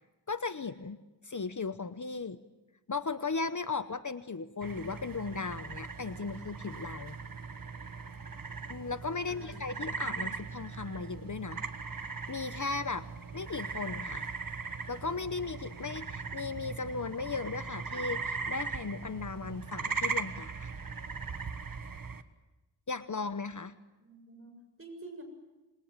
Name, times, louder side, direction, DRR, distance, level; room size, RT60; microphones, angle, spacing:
voice 1, 0.3-1.0 1.2-2.4 2.9-7.2 8.7-11.6 12.3-13.1 13.3-14.3 14.9-20.7 22.9-23.8, left 4 dB, 45° left, 12 dB, 0.9 m, -36 dB
sound 1, 4.6-22.2, right 5 dB, 50° right, 1.4 m, -39 dB
voice 2, 9.3-10.3 24.0-25.2, right 2 dB, 30° right, 3 dB, 7.1 m, -49 dB
27.0 x 22.0 x 9.0 m, 1.1 s
wide cardioid pair, 95°, 42 cm